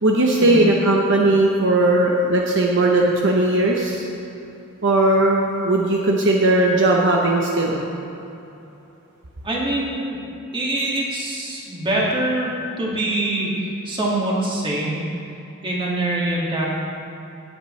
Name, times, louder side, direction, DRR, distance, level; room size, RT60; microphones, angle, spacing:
voice 1, 0.0-4.0 4.8-7.8, right 2 dB, 60° right, -1 dB, 0.9 m, -18 dB
voice 2, 9.4-10.2 10.5-12.5 12.8-15.0 15.6-16.7, right 1 dB, 25° right, -5 dB, 2.1 m, -24 dB
17.0 x 8.3 x 3.3 m, 2.9 s
head